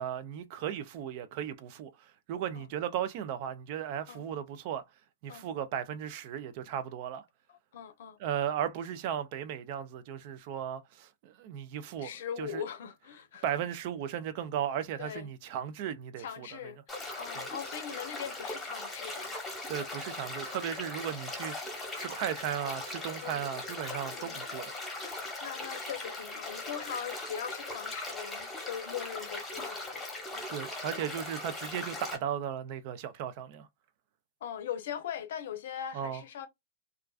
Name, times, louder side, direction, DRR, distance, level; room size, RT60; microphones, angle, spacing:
voice 1, 0.0-4.8 5.2-7.2 8.2-12.1 12.4-12.6 13.4-16.6 17.4-17.5 19.7-24.8 30.5-33.7 35.9-36.2, right 9 dB, 50° right, 0.4 m, -36 dB
voice 2, 7.5-8.2 12.0-13.4 15.0-15.3 16.2-19.4 23.2-23.5 24.1-24.4 25.4-30.0 30.3-30.4 34.4-36.5, left 8 dB, 70° left, 0.6 m, -40 dB
sound 1, 16.9-32.2, left 2 dB, 10° left, 1.0 m, -39 dB
2.4 x 2.2 x 2.3 m
hypercardioid pair, 130°, 0 cm